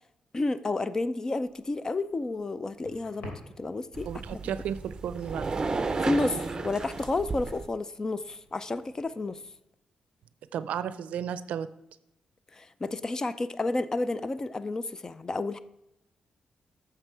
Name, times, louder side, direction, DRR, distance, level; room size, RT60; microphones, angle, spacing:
voice 1, 0.3-4.4 6.0-9.4 12.5-15.6, left 2 dB, 25° left, 14 dB, 0.4 m, -31 dB
sound 1, 1.3-9.5, equal, 85° left, 3.0 m, -53 dB
sound 2, 3.9-7.7, right 3 dB, 30° right, 0.6 m, -33 dB
voice 2, 4.1-5.5 10.5-11.7, right 8 dB, 90° right, 14 dB, 0.4 m, -33 dB
9.1 x 6.7 x 4.6 m, 0.87 s
cardioid pair, 115°, 2 cm